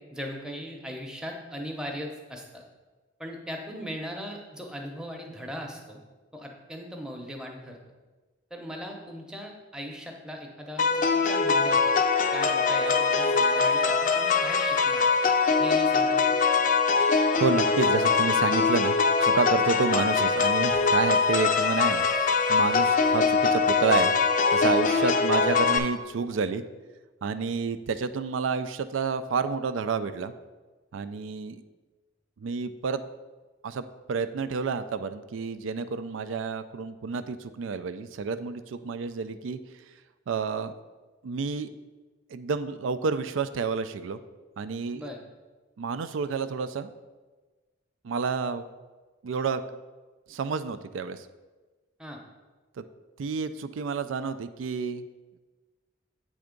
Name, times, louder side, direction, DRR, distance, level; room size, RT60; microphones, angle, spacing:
voice 1, 0.1-2.6 3.2-6.0 6.3-7.8 8.5-11.8 12.3-15.0 15.6-16.2 25.2-25.3 44.9-45.2 52.0-52.2, equal, 5° right, 1 dB, 0.7 m, -39 dB
sound 1, 10.8-25.8, left 4 dB, 40° left, 0.4 m, -23 dB
voice 2, 17.0-19.0 19.2-24.1 24.5-26.6 27.2-30.3 30.9-31.6 32.4-33.0 33.6-39.6 40.3-40.7 41.2-41.7 42.3-44.2 44.6-45.1 45.8-46.9 48.0-48.6 49.2-49.6 50.3-51.3 52.8-52.9 53.2-55.0, right 5 dB, 85° right, 12 dB, 0.4 m, -29 dB
7.6 x 3.5 x 5.1 m, 1.3 s
head